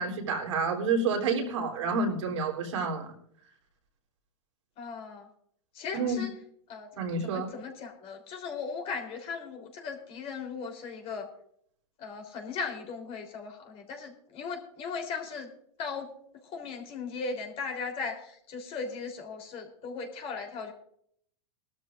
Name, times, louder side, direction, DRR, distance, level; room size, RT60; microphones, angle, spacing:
voice 1, 0.0-3.1 5.9-6.2 7.0-7.5, right 4 dB, 80° right, -1 dB, 3.3 m, -29 dB
voice 2, 4.8-5.3 5.7-6.3 6.7-6.9 7.2-11.3 12.0-15.5 15.8-16.1 16.4-20.7, left 5 dB, 40° left, 3 dB, 3.6 m, -37 dB
21.0 x 13.0 x 2.5 m, 0.67 s
hypercardioid pair, 115°, 15 cm